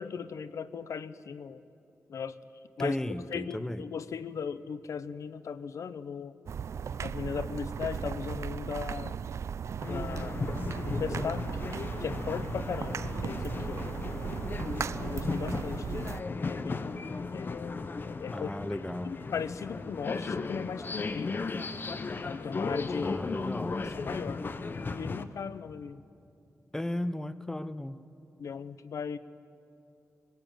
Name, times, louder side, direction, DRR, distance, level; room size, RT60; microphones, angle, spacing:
voice 1, 0.0-1.6 2.1-2.3 2.8-3.0 3.3-6.3 7.0-9.2 9.9-10.4 10.8-11.4 12.0-13.8 15.0-17.0 17.3-18.5 19.0-21.3 22.2-23.2 23.8-24.4 24.9-26.0 28.4-29.2, left 6 dB, 80° left, 15 dB, 0.7 m, -37 dB
voice 2, 2.8-3.9 18.3-19.2 23.0-23.8 26.7-28.0, left 1 dB, 10° left, 13 dB, 0.7 m, -35 dB
sound 1, 6.5-16.2, right 7 dB, 65° right, 0.4 m, -36 dB
sound 2, 9.8-25.2, left 4 dB, 40° left, 0.9 m, -36 dB
21.0 x 18.5 x 9.0 m, 2.7 s
wide cardioid pair, 115°, 5 cm